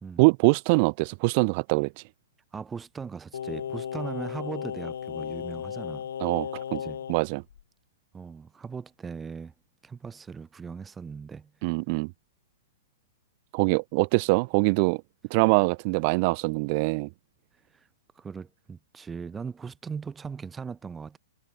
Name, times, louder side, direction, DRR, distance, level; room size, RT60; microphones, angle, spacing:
voice 1, 0.2-1.9 6.2-6.8 7.1-7.4 11.6-12.1 13.5-15.0 15.3-17.1, right 30 dB, 35° right, 0.6 m, -23 dB
voice 2, 2.5-6.1 6.7-7.1 8.1-9.5 9.8-11.5 17.7-17.9 18.1-21.2, right 5 dB, 10° right, 4.2 m, -39 dB
Singing, 3.3-7.2 7.5-7.6, left 9 dB, 75° left, 1.2 m, -35 dB
hypercardioid pair, 170°, 0 cm